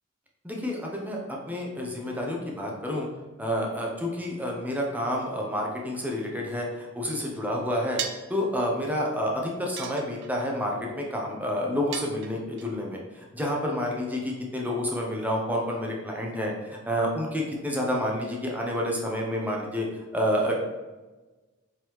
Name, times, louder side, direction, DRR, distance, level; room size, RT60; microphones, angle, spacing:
voice 1, 0.4-3.1 3.4-8.0 8.3-19.9 20.1-20.6, equal, 10° right, -1 dB, 0.8 m, -29 dB
sound 1, 8.0-8.4 9.8-10.5 11.9-12.7, right 8 dB, 60° right, 0.4 m, -35 dB
4.7 x 3.6 x 3.1 m, 1.2 s
head